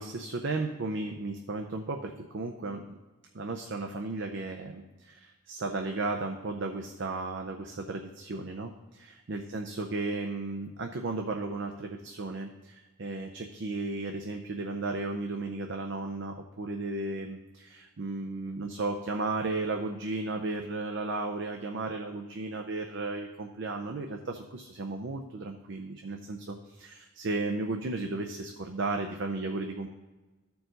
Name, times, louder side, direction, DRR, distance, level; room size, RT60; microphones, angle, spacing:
voice 1, 0.0-2.8 3.3-29.9, right 3 dB, 55° right, 4 dB, 0.5 m, -34 dB
14.0 x 4.7 x 3.9 m, 1.2 s
head